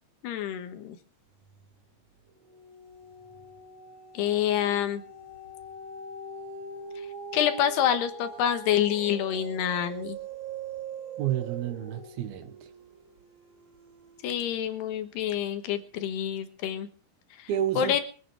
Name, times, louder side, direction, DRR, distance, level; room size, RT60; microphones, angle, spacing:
voice 1, 0.2-1.0 4.1-5.0 7.3-10.2 14.2-16.9 17.4-17.5 17.8-18.0, left 10 dB, 75° left, 3.4 m, -27 dB
sound 1, 1.4-1.9 2.3-14.8 15.3-15.4, right 4 dB, 50° right, 4.7 m, -42 dB
voice 2, 11.2-12.6 17.5-18.0, right 11 dB, 70° right, 2.9 m, -30 dB
23.5 x 9.3 x 4.8 m
omnidirectional pair, 4.8 m